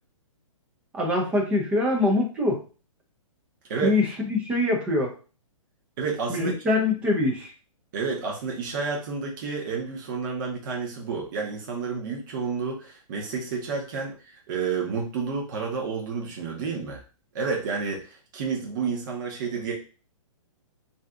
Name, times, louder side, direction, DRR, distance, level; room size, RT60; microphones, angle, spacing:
voice 1, 0.9-2.6 3.8-5.2 6.3-7.5, left 2 dB, 5° right, 1 dB, 0.4 m, -24 dB
voice 2, 6.0-6.5 7.9-17.0 17.3-19.7, right 5 dB, 35° right, -1 dB, 0.8 m, -30 dB
2.6 x 2.3 x 3.5 m, 0.35 s
hypercardioid pair, 160°, 17 cm